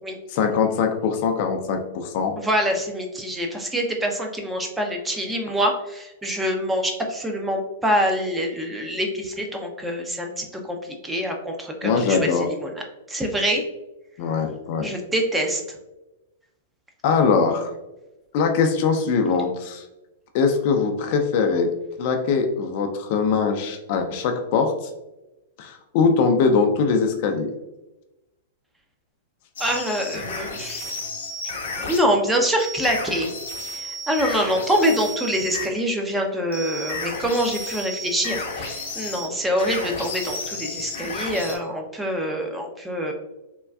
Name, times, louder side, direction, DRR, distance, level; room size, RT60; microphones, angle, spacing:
voice 1, 0.3-2.3 11.8-12.5 14.2-14.9 17.0-17.7 18.3-19.9 20.3-21.7 22.0-24.7 25.6-27.5, left 5 dB, 50° left, 4 dB, 0.4 m, -21 dB
voice 2, 2.4-10.8 11.0-12.2 12.6-12.7 13.1-13.6 14.8-15.6 29.6-30.9 31.4-31.6 31.9-33.3 33.7-43.1, equal, 10° right, 2 dB, 0.5 m, -25 dB
sound 1, 29.6-32.1 32.6-35.7 36.5-41.6, left 2 dB, 70° left, 0.8 m, -32 dB
3.5 x 2.2 x 2.2 m, 0.98 s
hypercardioid pair, 110°, 0 cm